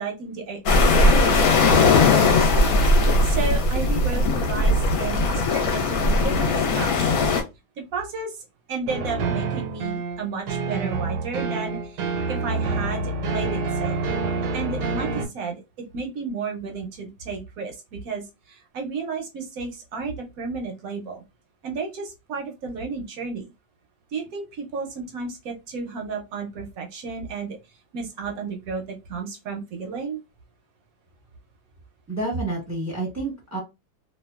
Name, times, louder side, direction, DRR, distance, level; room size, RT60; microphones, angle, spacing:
voice 1, 0.0-2.8 3.2-5.2 5.5-7.1 7.8-14.0 14.5-15.6 15.9-21.2 21.6-23.5 24.1-27.6 27.9-30.2, right 4 dB, 65° right, 3 dB, 0.9 m, -33 dB
sound 1, 0.7-7.4, left 2 dB, 65° left, 1.1 m, -19 dB
sound 2, 8.9-15.3, right 4 dB, 80° right, 1.2 m, -27 dB
voice 2, 32.1-33.6, right 2 dB, 15° right, -3 dB, 0.7 m, -29 dB
2.8 x 2.2 x 2.3 m, 0.24 s
omnidirectional pair, 1.9 m